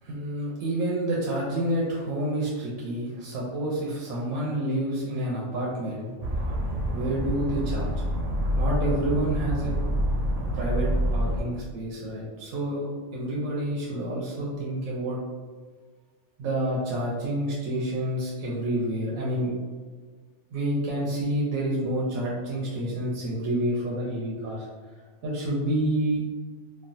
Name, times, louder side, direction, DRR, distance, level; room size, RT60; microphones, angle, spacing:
voice 1, 0.0-6.1 6.9-7.9 8.6-9.7 10.5-15.2 16.4-19.5 20.5-24.7 25.2-26.2, right 1 dB, 90° right, -4 dB, 1.0 m, -28 dB
sound 1, 6.2-11.4, equal, 70° right, 0.9 m, -27 dB
3.1 x 2.3 x 2.6 m, 1.5 s
omnidirectional pair, 1.4 m